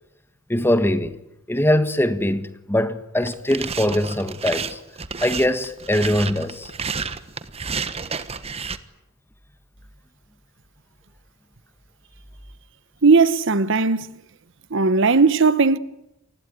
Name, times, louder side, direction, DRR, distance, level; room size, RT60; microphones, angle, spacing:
voice 1, 0.5-1.2 1.5-4.8 5.2-6.7, left 1 dB, 10° left, 1.4 m, -22 dB
sound 1, 3.2-8.8, right 5 dB, 30° right, 1.3 m, -31 dB
voice 2, 13.0-14.2 14.7-15.8, right 4 dB, 65° right, 1.0 m, -17 dB
28.5 x 20.5 x 9.3 m
head